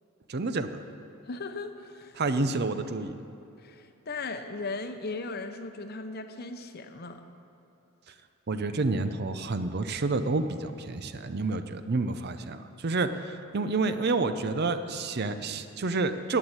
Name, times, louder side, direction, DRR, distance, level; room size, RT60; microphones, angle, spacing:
voice 1, 0.3-0.8 2.1-3.2 8.5-16.4, right 3 dB, 45° right, 10 dB, 0.6 m, -29 dB
voice 2, 1.2-2.2 3.6-7.2, left 3 dB, 45° left, 8 dB, 0.8 m, -37 dB
12.5 x 8.0 x 8.8 m, 2.9 s
head